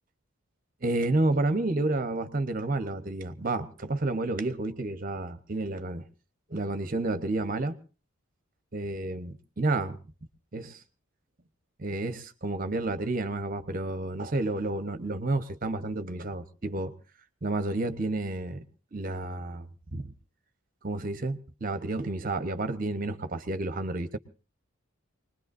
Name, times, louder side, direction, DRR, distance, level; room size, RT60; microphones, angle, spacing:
voice 1, 0.8-6.0 6.5-7.8 8.7-10.0 10.5-10.8 11.8-16.9 17.4-18.6 18.9-20.1 20.8-24.2, right 2 dB, 40° right, 1.0 m, -30 dB
24.5 x 20.5 x 2.6 m
head